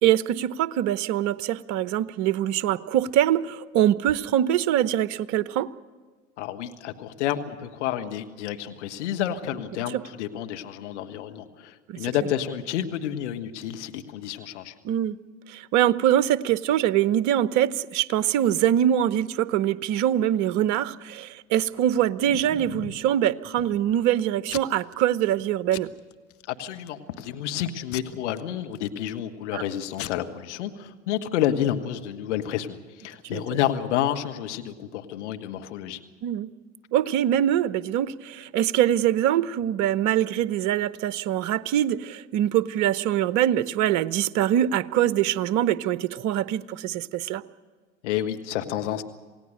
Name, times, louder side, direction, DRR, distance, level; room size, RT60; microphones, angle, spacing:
voice 1, 0.0-5.7 9.9-10.0 11.9-12.1 14.8-15.2 15.5-25.9 29.5-29.6 33.3-33.4 36.2-36.5 36.9-47.4, right 11 dB, 50° right, 0.9 m, -23 dB
voice 2, 6.4-14.7 26.5-36.0 48.0-49.0, left 11 dB, 70° left, 1.7 m, -30 dB
Packing tape duct tape / Tearing, 21.7-23.1 23.6-24.1 24.5-24.9 25.3-25.4 25.7-26.4 26.9-27.2 27.9-29.2 29.7-29.8 29.9-30.1, left 13 dB, 40° left, 1.1 m, -40 dB
27.5 x 17.5 x 6.6 m
hypercardioid pair, 75°, 37 cm